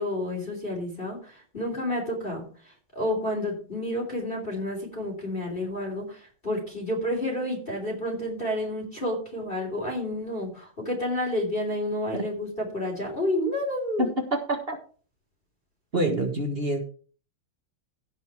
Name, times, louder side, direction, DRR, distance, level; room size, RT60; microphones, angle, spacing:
voice 1, 0.0-14.0, left 1 dB, 25° left, -1 dB, 3.6 m, -30 dB
voice 2, 14.0-14.8 15.9-16.8, right 1 dB, 30° right, 4 dB, 1.6 m, -26 dB
16.5 x 5.6 x 4.7 m, 0.41 s
omnidirectional pair, 2.3 m